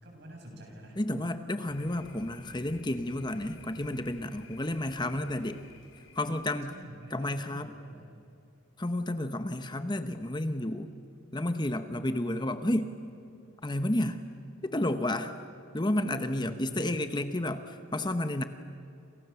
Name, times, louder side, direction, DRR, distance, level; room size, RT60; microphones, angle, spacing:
voice 1, 0.0-1.0 6.7-8.2 12.0-12.5 16.4-16.9, right 1 dB, 55° right, 2 dB, 7.5 m, -47 dB
voice 2, 1.0-5.6 6.1-6.7 7.1-7.7 8.8-10.9 11.3-12.9 13.6-14.2 14.6-15.3 15.7-18.4, left 1 dB, 20° left, 9 dB, 1.0 m, -31 dB
Thunder, 1.7-6.9, left 2 dB, 80° left, 4.9 m, -54 dB
29.5 x 28.5 x 7.0 m, 2.5 s
head